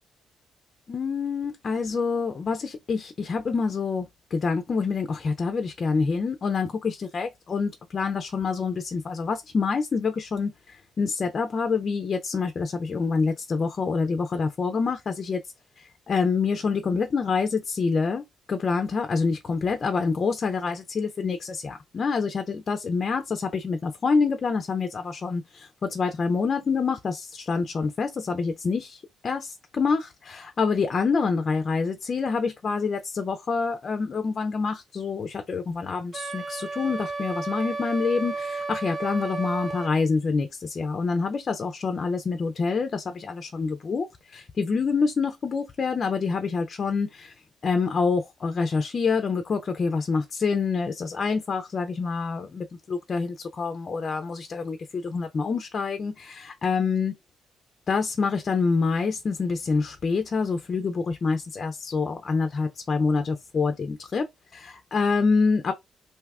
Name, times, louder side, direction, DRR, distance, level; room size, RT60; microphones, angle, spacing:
voice 1, 0.9-15.4 15.8-47.3 47.6-57.1 57.9-64.3 64.5-65.7, left 4 dB, 45° left, 0.4 m, -27 dB
Wind instrument woodwind instrument, 36.1-39.9, right 3 dB, 40° right, 1.0 m, -33 dB
2.6 x 2.3 x 3.4 m
cardioid pair, 90°, 0 cm